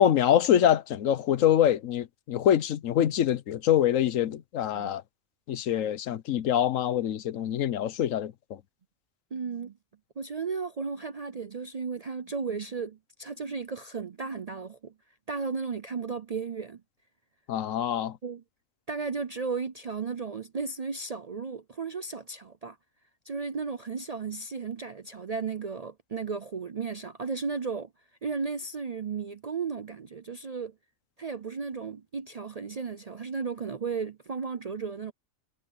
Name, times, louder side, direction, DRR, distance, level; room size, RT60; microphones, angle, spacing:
voice 1, 0.0-5.0 5.5-8.3 17.5-18.2, left 10 dB, 80° left, 1.2 m, -24 dB
voice 2, 9.3-9.8 10.2-14.9 15.3-16.8 18.2-18.4 18.9-22.8 23.3-27.9 28.2-30.7 31.2-35.1, right 5 dB, 45° right, 0.5 m, -34 dB
omnidirectional pair, 1.4 m